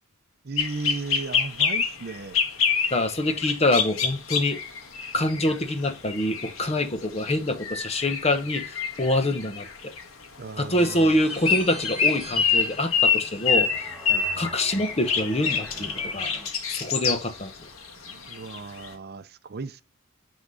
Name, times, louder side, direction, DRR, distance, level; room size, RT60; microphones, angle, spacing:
voice 1, 0.4-2.4 10.4-11.1 14.1-14.2 18.1-19.8, right 3 dB, 50° right, 0.6 m, -35 dB
sound 1, 0.6-6.7 7.2-7.3 7.6-10.3 11.1-17.4 17.8-18.9, left 6 dB, 75° left, 1.7 m, -26 dB
voice 2, 2.9-4.6 5.1-9.9 10.6-13.7 14.4-16.3 16.7-17.5, left 1 dB, 30° left, 1.0 m, -25 dB
sound 2, 10.8-16.5, equal, ahead, 2.6 m, -42 dB
9.9 x 3.6 x 5.5 m
head